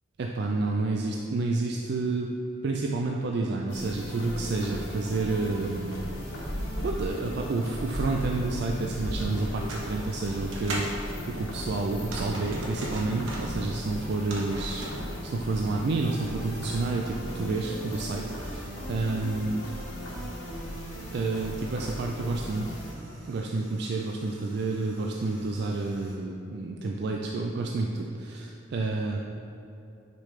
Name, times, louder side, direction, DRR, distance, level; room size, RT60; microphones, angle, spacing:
voice 1, 0.2-2.3 2.6-6.0 6.8-19.6 21.1-22.7 23.3-29.2, right 3 dB, 55° right, 0 dB, 0.3 m, -30 dB
sound 1, 3.7-22.9, equal, 75° left, 1.4 m, -38 dB
sound 2, 5.9-14.8, equal, 15° right, 0.7 m, -39 dB
sound 3, 9.4-10.9 11.9-13.5 14.0-15.0 16.2-26.1, right 2 dB, 80° right, 1.1 m, -43 dB
6.7 x 5.0 x 3.2 m, 2.9 s
head